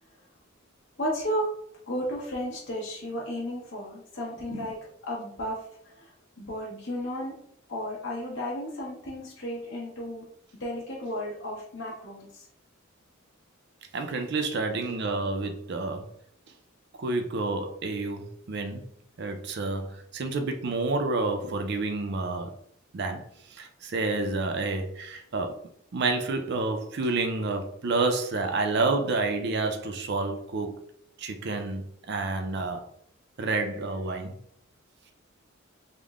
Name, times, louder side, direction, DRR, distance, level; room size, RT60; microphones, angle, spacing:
voice 1, 1.0-1.5 1.9-5.7 6.0-6.1 6.4-7.3 7.7-10.2 10.6-12.4, equal, 65° left, -5 dB, 1.1 m, -33 dB
voice 2, 13.9-16.0 17.0-18.9 19.2-22.5 22.9-25.5 25.9-30.8 31.2-32.8 33.4-34.4, right 3 dB, 55° right, 6 dB, 0.5 m, -29 dB
3.5 x 2.1 x 3.5 m, 0.67 s
head